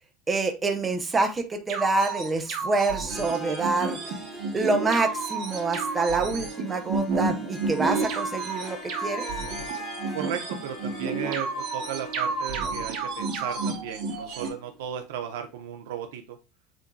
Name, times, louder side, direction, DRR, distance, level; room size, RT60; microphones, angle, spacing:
voice 1, 0.3-4.0 4.5-9.3, right 3 dB, 15° right, 0.6 m, -26 dB
sound 1, 1.7-14.5, right 4 dB, 45° right, 1.0 m, -31 dB
Harp, 3.1-14.9, right 2 dB, 5° left, 1.0 m, -42 dB
Wind instrument woodwind instrument, 8.4-12.9, left 7 dB, 70° left, 2.0 m, -45 dB
voice 2, 10.1-16.4, right 9 dB, 90° right, 0.7 m, -35 dB
7.4 x 2.7 x 2.2 m
supercardioid pair, 165°, 0 cm